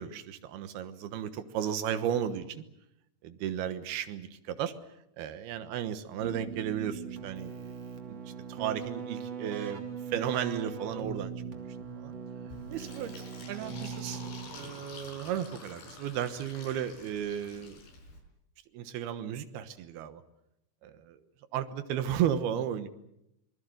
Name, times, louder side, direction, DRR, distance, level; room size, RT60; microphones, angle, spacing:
voice 1, 0.0-2.6 3.2-4.7 5.2-7.7 8.1-8.2 8.5-11.3 12.0-12.1 12.7-13.1 13.5-14.2 14.5-17.8 18.7-20.2 20.8-21.2 21.5-22.9, right 9 dB, 75° right, 11 dB, 3.1 m, -34 dB
Keyboard (musical), 6.2-14.9, right 6 dB, 45° right, 2.6 m, -40 dB
Fill (with liquid), 12.5-18.2, left 3 dB, 70° left, 6.6 m, -48 dB
25.5 x 20.0 x 7.9 m, 0.82 s
omnidirectional pair, 4.6 m